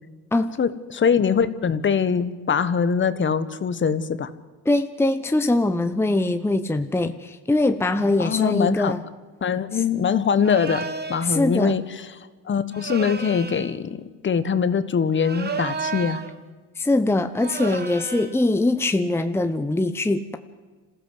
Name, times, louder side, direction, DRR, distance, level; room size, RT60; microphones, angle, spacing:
voice 1, 0.6-4.3 8.2-8.9 9.4-12.1 12.4-14.0 14.2-16.2, left 6 dB, 35° left, 13 dB, 1.4 m, -23 dB
voice 2, 4.7-9.0 11.2-11.8 16.8-20.4, left 2 dB, 5° left, 9 dB, 0.9 m, -22 dB
sound 1, 10.4-11.3 12.7-13.8 15.1-16.4 17.4-18.4, right 5 dB, 30° right, 2.1 m, -32 dB
26.5 x 15.5 x 7.9 m, 1.4 s
cardioid pair, 115°, 34 cm